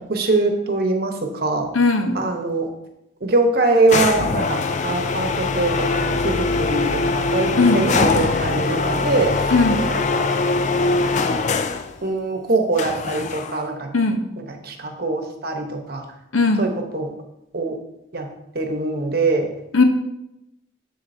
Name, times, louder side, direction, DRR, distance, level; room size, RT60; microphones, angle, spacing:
voice 1, 0.1-1.7 2.1-2.7 3.2-9.3 9.9-10.3 11.3-11.4 12.0-13.9 14.5-16.0 16.6-17.1 17.5-17.8 18.1-18.3 18.5-19.5, right 3 dB, 50° right, 4 dB, 1.0 m, -23 dB
voice 2, 1.7-2.2 7.6-7.8 9.5-9.8 13.9-14.2 16.3-16.7 19.7-19.8, left 3 dB, 85° left, 5 dB, 0.9 m, -17 dB
sound 1, 3.9-11.9 12.8-13.7, left 3 dB, 35° left, 0.4 m, -22 dB
7.4 x 7.2 x 2.7 m, 0.89 s
head